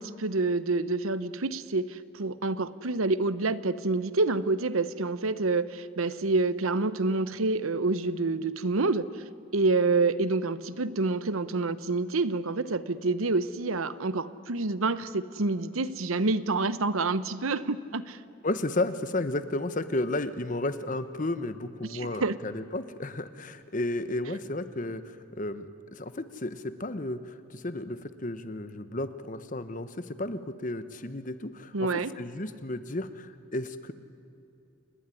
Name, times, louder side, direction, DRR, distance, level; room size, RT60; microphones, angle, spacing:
voice 1, 0.0-9.2 9.5-18.2 21.9-22.3 31.7-32.1, right 3 dB, 80° right, 15 dB, 0.9 m, -28 dB
voice 2, 18.4-31.9 32.2-33.9, left 2 dB, 40° left, 12 dB, 1.0 m, -33 dB
29.0 x 19.5 x 9.9 m, 2.7 s
head